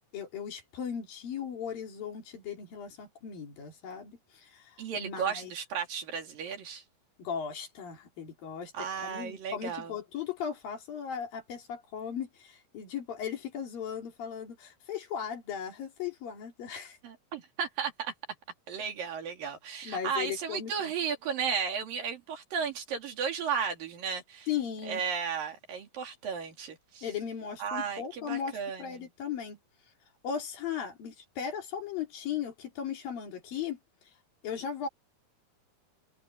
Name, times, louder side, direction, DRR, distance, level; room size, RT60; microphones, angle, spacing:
voice 1, 0.1-5.5 7.2-17.0 19.8-20.9 24.5-25.0 27.0-29.6 30.2-33.8 34.4-34.9, left 8 dB, 75° left, 5.1 m, -37 dB
voice 2, 4.8-6.8 8.7-9.9 17.0-18.1 18.7-24.5 24.9-27.0 27.6-29.1, right 6 dB, 75° right, 4.6 m, -34 dB
omnidirectional pair, 4.1 m